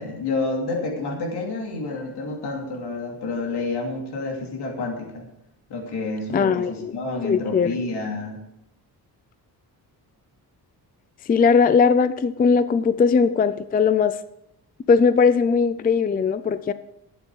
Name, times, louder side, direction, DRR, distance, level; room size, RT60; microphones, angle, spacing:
voice 1, 0.0-5.3 5.7-8.4, left 3 dB, 80° left, 1 dB, 2.7 m, -29 dB
voice 2, 6.3-6.9 7.2-7.8 11.3-14.2 14.9-16.7, left 5 dB, 25° left, 14 dB, 0.4 m, -19 dB
12.0 x 9.1 x 4.8 m, 0.82 s
wide cardioid pair, 145°, 39 cm